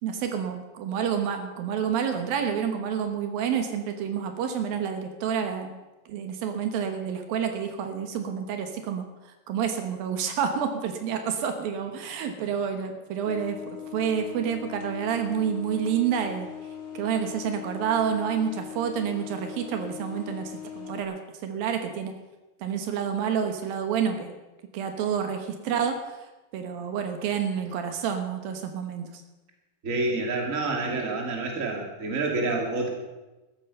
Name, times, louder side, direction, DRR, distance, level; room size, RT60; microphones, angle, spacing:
voice 1, 0.0-5.8 6.1-9.0 9.5-16.5 16.9-21.2 21.4-22.1 22.6-24.3 24.7-26.0 26.5-29.1, right 7 dB, 75° right, 6 dB, 3.0 m, -29 dB
sound 1, 13.3-21.0, left 8 dB, 50° left, 1.8 m, -40 dB
voice 2, 29.8-32.9, right 3 dB, 25° right, 1 dB, 2.4 m, -28 dB
15.0 x 13.5 x 5.6 m, 1.1 s
omnidirectional pair, 4.2 m